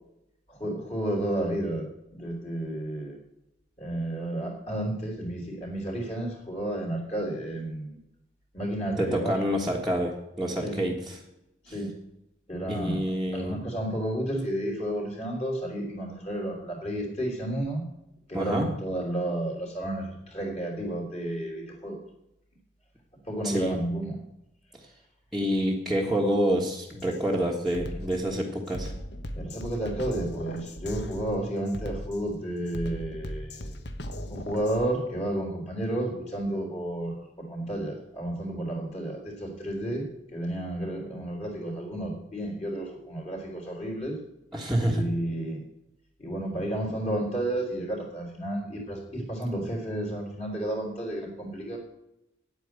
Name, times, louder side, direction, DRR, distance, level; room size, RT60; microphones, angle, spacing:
voice 1, 0.5-1.9 2.1-3.2 3.8-8.0 8.5-9.3 10.6-10.9 11.6-11.9 12.5-13.0 13.3-17.8 18.3-22.0 23.3-24.2 29.3-33.8 34.3-40.1 40.3-44.2 44.8-45.6 46.2-51.8, right 1 dB, 35° left, -1 dB, 3.5 m, -31 dB
voice 2, 9.0-11.2 12.7-13.6 18.3-18.7 23.4-23.8 25.3-28.9 44.5-45.0, equal, ahead, -5 dB, 1.4 m, -27 dB
Drum kit, 27.0-27.2 27.7-34.9, equal, 60° left, 1.2 m, -38 dB
9.3 x 8.8 x 8.1 m, 0.85 s
head